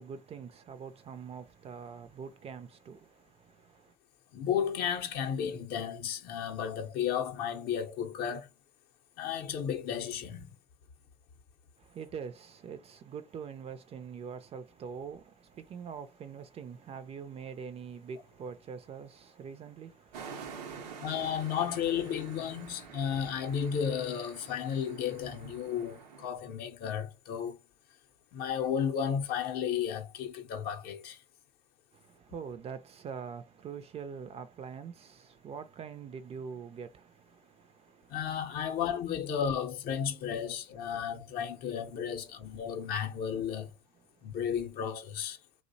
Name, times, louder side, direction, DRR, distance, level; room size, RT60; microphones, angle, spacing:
voice 1, 0.0-3.9 11.8-21.1 31.9-38.2 44.1-44.3, right 6 dB, 30° right, 0.4 m, -44 dB
voice 2, 4.3-8.5 9.2-10.5 21.0-27.6 28.3-31.2 38.1-43.7 44.2-45.4, left 8 dB, 50° left, 0.6 m, -33 dB
sound 1, 20.1-26.3, right 6 dB, 85° right, 0.5 m, -47 dB
2.5 x 2.0 x 2.6 m
hypercardioid pair, 80°, 20 cm